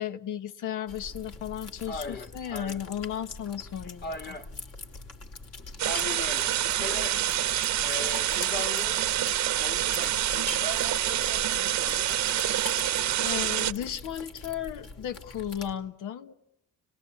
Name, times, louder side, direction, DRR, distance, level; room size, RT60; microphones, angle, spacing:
voice 1, 0.0-4.4 13.2-16.3, left 10 dB, 85° left, 1.3 m, -35 dB
sound 1, 0.9-15.7, left 3 dB, 55° left, 3.1 m, -43 dB
voice 2, 1.9-2.8 4.0-4.5 5.8-7.2 7.8-9.1 9.5-12.3, left 2 dB, 35° left, 2.1 m, -39 dB
sound 2, 5.8-13.7, right 12 dB, 70° right, 0.9 m, -27 dB
30.0 x 20.0 x 8.5 m
cardioid pair, 90°, 30 cm